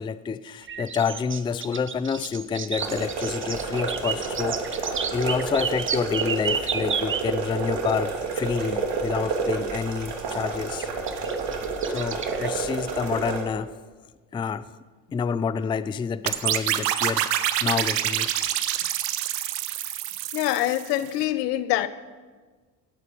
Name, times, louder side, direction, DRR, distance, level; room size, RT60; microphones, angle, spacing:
voice 1, 0.0-10.9 11.9-13.7 14.3-14.7 15.1-17.3 17.6-18.3, left 6 dB, 10° left, 0.4 m, -28 dB
sound 1, 0.7-7.3 8.9-9.0 10.8-12.5, right 6 dB, 25° right, 1.0 m, -31 dB
sound 2, 2.7-13.4, right 4 dB, 55° right, 2.8 m, -30 dB
sound 3, 16.3-21.1, right 12 dB, 85° right, 0.9 m, -27 dB
voice 2, 20.3-21.9, left 14 dB, 80° left, 0.8 m, -25 dB
17.5 x 8.1 x 5.4 m
hypercardioid pair, 70°, 48 cm